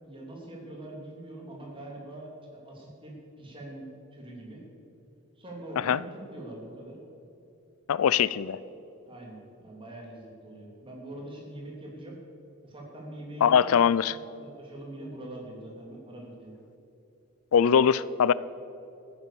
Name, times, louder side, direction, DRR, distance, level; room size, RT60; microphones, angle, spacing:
voice 1, 0.0-2.3 2.6-4.6 5.4-7.0 9.0-12.2 12.6-13.8 14.1-16.5, right 1 dB, 25° right, 3.2 m, -43 dB
voice 2, 7.9-8.6 13.4-14.2 17.5-18.3, left 7 dB, 85° left, 0.4 m, -22 dB
15.0 x 10.0 x 7.0 m
head